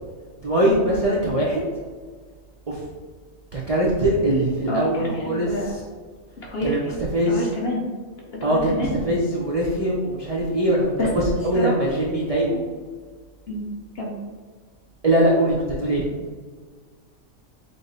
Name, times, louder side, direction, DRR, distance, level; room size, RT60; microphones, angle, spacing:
voice 1, 0.4-1.6 2.7-2.8 3.5-5.5 6.6-7.4 8.4-12.6 15.0-16.0, right 1 dB, 55° right, -4 dB, 0.4 m, -22 dB
voice 2, 4.7-5.8 6.5-7.0 7.3-7.9 8.4-9.0 11.0-11.1 11.5-12.0 13.5-13.6 13.9-14.1, left 1 dB, 50° left, -3 dB, 1.0 m, -28 dB
5.0 x 2.0 x 4.0 m, 1.5 s
omnidirectional pair, 1.5 m